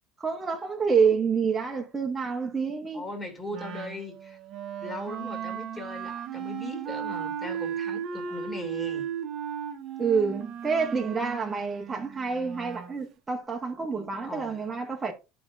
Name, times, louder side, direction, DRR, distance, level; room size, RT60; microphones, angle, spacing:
voice 1, 0.2-3.0 10.0-15.1, right 5 dB, 15° right, 1.0 m, -27 dB
voice 2, 2.9-4.4 4.8-9.1 13.9-14.7, left 1 dB, 15° left, 2.3 m, -39 dB
Wind instrument woodwind instrument, 3.5-13.0, right 8 dB, 45° right, 1.0 m, -36 dB
11.5 x 5.2 x 2.5 m
cardioid pair, 135°, 0 cm